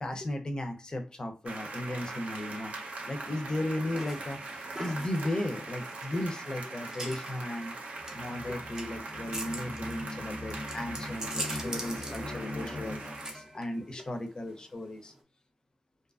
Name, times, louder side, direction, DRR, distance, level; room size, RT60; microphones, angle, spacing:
voice 1, 0.0-2.7 3.1-7.7 8.1-15.1, left 1 dB, 35° left, 5 dB, 0.5 m, -36 dB
sound 1, 1.5-13.3, right 2 dB, 80° right, 0.6 m, -41 dB
sound 2, 3.9-15.2, right 1 dB, 25° right, 0.6 m, -43 dB
sound 3, 8.0-13.5, left 1 dB, 85° left, 0.5 m, -41 dB
2.6 x 2.4 x 2.3 m, 0.37 s
wide cardioid pair, 110°, 2 cm